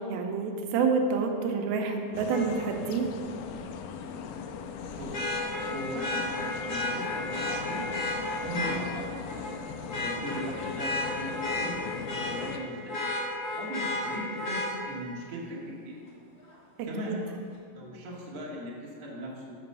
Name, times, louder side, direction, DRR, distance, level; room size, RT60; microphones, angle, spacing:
voice 1, 0.0-3.1 16.8-17.2, right 5 dB, 90° right, 3 dB, 2.5 m, -28 dB
sound 1, 2.1-12.6, left 6 dB, 85° left, 1.8 m, -39 dB
Vehicle horn car horn honking, 2.3-2.4 5.1-8.8 9.3-9.5 9.9-12.5 12.9-14.7 16.5-16.6, left 2 dB, 55° left, 1.1 m, -32 dB
voice 2, 5.7-7.8 8.4-9.0 9.3-9.4 9.9-11.8 12.2-13.0 13.6-16.0 16.8-17.2 17.7-19.5, equal, 55° right, -4 dB, 2.3 m, -38 dB
6.0 x 5.8 x 6.7 m, 2.3 s
omnidirectional pair, 4.2 m